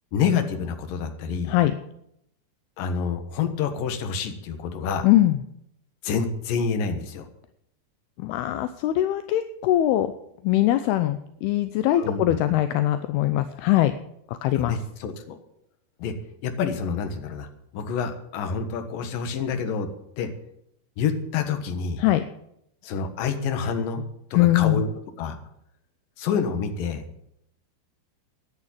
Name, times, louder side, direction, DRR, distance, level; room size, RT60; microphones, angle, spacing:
voice 1, 0.1-1.5 2.8-5.1 6.0-7.3 12.0-12.4 14.5-15.4 16.0-16.2 16.4-17.5 17.7-19.9 20.2-20.3 21.0-22.0 22.8-24.9 25.2-25.4 26.2-27.0, left 6 dB, 65° left, 7 dB, 2.8 m, -28 dB
voice 2, 5.0-5.4 8.2-10.1 10.4-13.9 14.3-14.8 22.0-22.2 24.3-24.9, left 14 dB, 80° left, 11 dB, 2.5 m, -22 dB
11.0 x 9.8 x 8.4 m, 0.77 s
omnidirectional pair, 4.7 m